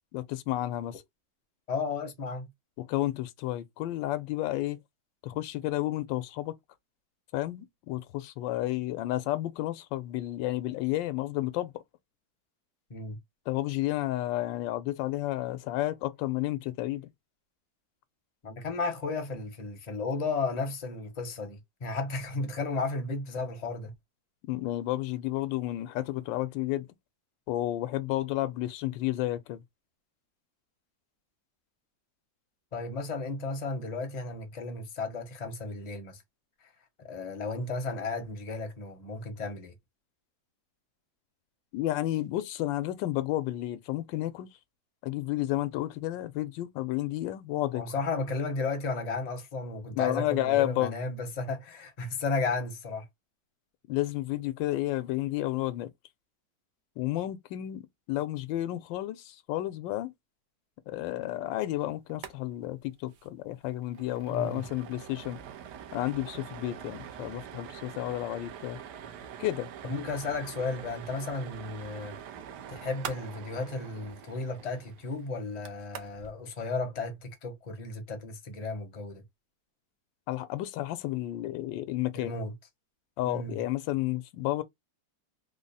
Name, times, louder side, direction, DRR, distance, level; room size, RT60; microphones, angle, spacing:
voice 1, 0.1-1.0 2.8-4.8 5.2-6.5 7.3-11.7 13.5-17.1 24.5-26.9 27.5-29.6 41.7-44.5 45.0-47.8 49.9-50.9 53.9-55.9 57.0-57.8 58.1-60.1 60.9-65.4 65.9-68.8 69.4-69.7 80.3-82.3 83.2-84.6, left 15 dB, 75° left, 1.3 m, -31 dB
voice 2, 1.7-2.4 12.9-13.2 18.4-23.9 32.7-36.2 37.0-39.7 47.7-53.1 64.3-64.6 69.8-72.2 72.7-79.2 82.1-82.5 83.2-83.6, left 3 dB, 30° left, 0.7 m, -34 dB
sound 1, 62.1-62.4 62.6-62.7 63.1-63.3 63.6-76.3, right 9 dB, 70° right, 1.1 m, -44 dB
3.7 x 2.0 x 3.9 m
omnidirectional pair, 2.1 m